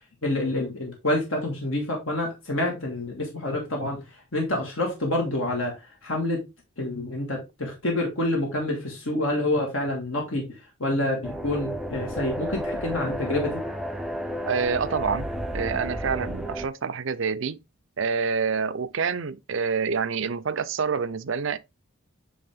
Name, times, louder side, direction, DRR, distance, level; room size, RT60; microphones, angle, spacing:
voice 1, 0.2-4.0 4.3-5.7 6.0-6.4 6.8-10.4 10.8-13.6, left 1 dB, 65° left, 1.9 m, -27 dB
sound 1, 11.2-16.7, equal, ahead, 0.5 m, -32 dB
voice 2, 14.4-17.6 18.0-21.6, right 5 dB, 60° right, 0.5 m, -27 dB
8.6 x 3.5 x 3.5 m
head